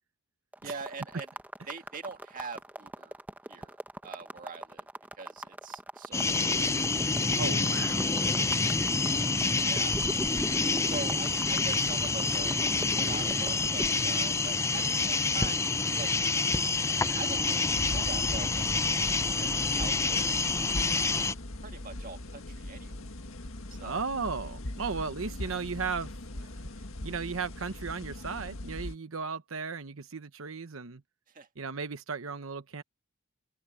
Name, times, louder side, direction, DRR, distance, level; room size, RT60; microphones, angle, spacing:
sound 1, 0.5-13.9, right 1 dB, 10° right, 1.3 m, -41 dB
voice 1, 0.6-1.3 1.7-3.2 3.5-3.8 4.0-4.9 5.2-6.7 7.7-8.0 9.6-10.0 10.9-15.6 16.0-16.1 17.1-20.6 21.6-23.0 23.7-24.0 31.3-31.5, right 4 dB, 40° right, 1.8 m, -43 dB
sound 2, 6.1-21.3, left 3 dB, 15° left, 0.5 m, -27 dB
voice 2, 7.3-8.1 23.8-26.1 26.4-26.5 27.0-31.0 31.6-32.8, right 5 dB, 80° right, 1.0 m, -35 dB
sound 3, 17.7-28.9, left 1 dB, 90° left, 1.8 m, -40 dB
open air
head